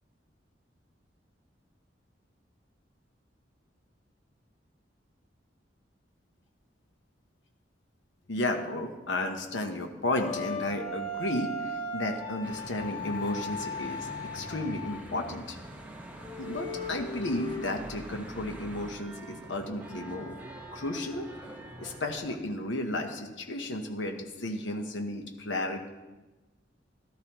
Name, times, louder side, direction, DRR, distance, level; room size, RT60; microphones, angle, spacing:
voice 1, 8.3-15.6 16.4-20.4 20.7-21.3 21.8-25.9, left 1 dB, 80° left, 4 dB, 1.0 m, -33 dB
sound 1, 10.1-15.2 15.6-15.7 16.2-17.8, left 1 dB, 30° left, 1.0 m, -37 dB
Church bell / Traffic noise roadway noise, 12.4-22.4, right 1 dB, 10° right, 1.2 m, -45 dB
13.5 x 12.5 x 3.0 m, 1.1 s
head